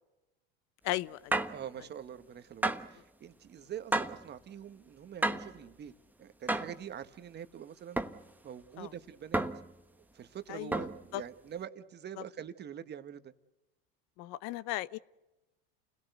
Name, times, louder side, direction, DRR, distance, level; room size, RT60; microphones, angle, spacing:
voice 1, 0.8-1.3 8.8-8.9 10.5-10.8 11.1-11.2 14.2-15.0, left 17 dB, 60° left, 19 dB, 0.8 m, -36 dB
sound 1, 1.3-1.6 2.6-3.0 3.9-4.3 5.2-5.6 6.5-6.8 8.0-8.2 9.3-9.7 10.7-11.1, right 2 dB, 5° right, 1.2 m, -31 dB
voice 2, 1.5-5.9 6.2-8.0 8.4-9.4 10.1-13.3, right 9 dB, 35° right, 11 dB, 1.4 m, -45 dB
29.0 x 17.0 x 8.1 m, 1.0 s
supercardioid pair, 100°, 30 cm